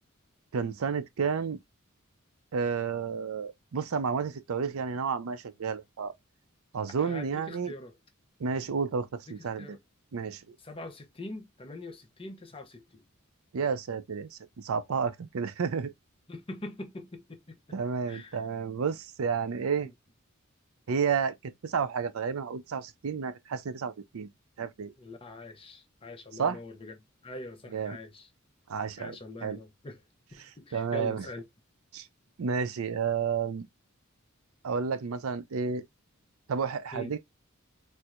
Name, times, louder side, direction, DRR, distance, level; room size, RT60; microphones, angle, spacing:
voice 1, 0.5-1.6 2.5-6.1 6.7-7.7 8.4-9.8 10.1-10.6 13.5-15.9 17.7-19.9 20.9-24.3 24.6-24.9 26.3-26.6 27.7-28.0 28.7-29.6 30.4-31.3 31.9-32.1 32.4-33.7 34.6-35.8 36.5-37.2, right 6 dB, 85° right, 0.5 m, -31 dB
voice 2, 7.0-8.0 9.6-9.8 10.6-13.0 16.3-17.6 18.1-18.4 19.8-19.9 25.0-26.9 27.2-28.3 29.0-30.0 30.6-31.4 36.9-37.1, left 2 dB, 25° left, 0.6 m, -43 dB
4.3 x 2.0 x 2.4 m
head